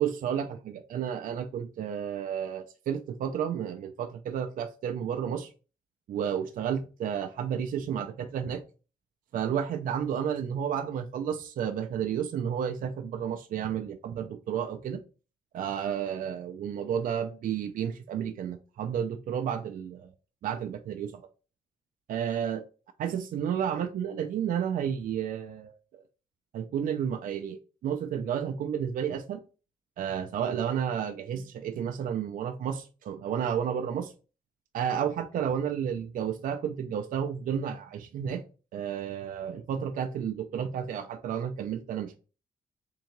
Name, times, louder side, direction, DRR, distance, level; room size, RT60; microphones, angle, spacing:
voice 1, 0.0-5.5 6.1-8.6 9.3-15.0 15.5-20.1 20.4-21.2 22.1-22.6 23.0-26.0 26.5-29.4 30.0-34.1 34.7-38.4 38.7-42.1, right 8 dB, 75° right, 0.4 m, -31 dB
3.6 x 3.4 x 3.0 m
wide cardioid pair, 135°, 14 cm